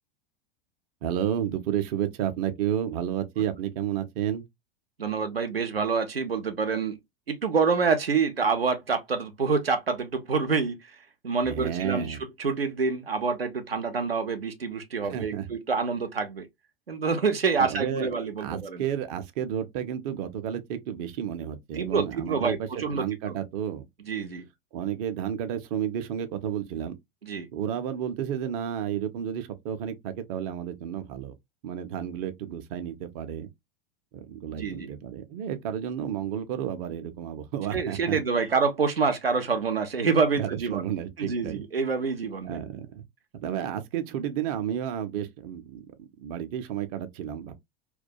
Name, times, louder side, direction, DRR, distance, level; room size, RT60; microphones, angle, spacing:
voice 1, 1.0-4.4 11.4-12.2 15.1-15.5 17.6-18.1 18.4-23.9 24.7-26.9 27.5-31.3 31.6-33.5 34.1-38.5 40.4-41.6 42.4-43.0 43.3-47.5, right 10 dB, 40° right, 0.5 m, -31 dB
voice 2, 5.0-7.0 7.3-10.9 11.2-16.5 16.9-18.8 21.7-23.4 24.1-24.4 27.2-27.5 34.5-34.9 37.7-40.8 41.2-42.6, right 5 dB, 90° right, 0.5 m, -27 dB
2.2 x 2.2 x 2.6 m
figure-of-eight pair, 90°, 29 cm